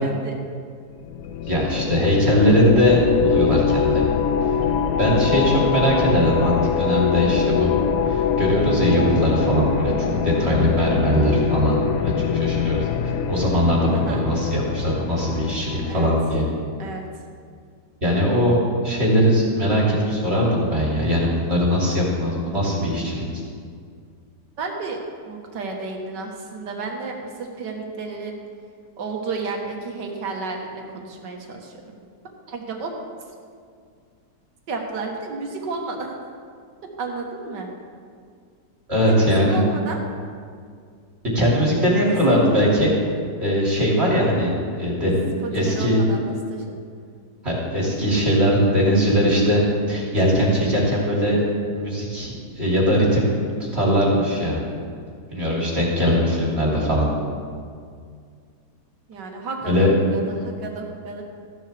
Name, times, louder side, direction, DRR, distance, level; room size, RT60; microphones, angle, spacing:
voice 1, 0.0-0.4 5.1-5.6 13.9-14.2 15.9-16.1 16.8-17.1 24.6-25.0 25.3-28.4 29.0-32.0 32.5-32.9 34.7-36.1 37.0-37.7 39.1-40.0 42.0-42.7 45.4-46.8 59.1-61.2, right 3 dB, 85° right, 1 dB, 2.0 m, -32 dB
sound 1, 1.0-16.4, left 7 dB, 65° left, 1.0 m, -23 dB
voice 2, 1.5-4.5 5.0-7.7 8.0-16.4 18.0-18.6 18.8-23.3 38.9-39.6 41.3-42.9 43.4-45.2 45.5-46.0 47.4-49.6 49.9-51.4 51.7-53.3 53.7-54.6 55.3-57.1 59.6-59.9, equal, 40° right, -5 dB, 2.9 m, -20 dB
14.5 x 11.5 x 3.4 m, 2.2 s
omnidirectional pair, 1.8 m